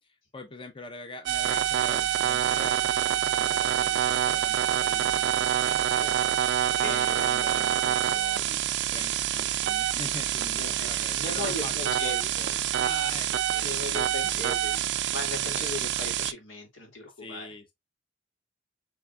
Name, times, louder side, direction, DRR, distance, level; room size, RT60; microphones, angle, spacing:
voice 1, 0.0-5.8 6.3-6.4 6.8-14.6 15.4-15.8 17.1-17.7, left 2 dB, 25° left, 0.6 m, -44 dB
sound 1, 1.3-16.3, right 10 dB, 65° right, 0.4 m, -26 dB
voice 2, 6.8-7.5 10.6-12.7 13.6-17.5, left 2 dB, 85° left, 2.3 m, -38 dB
6.0 x 3.4 x 2.3 m
head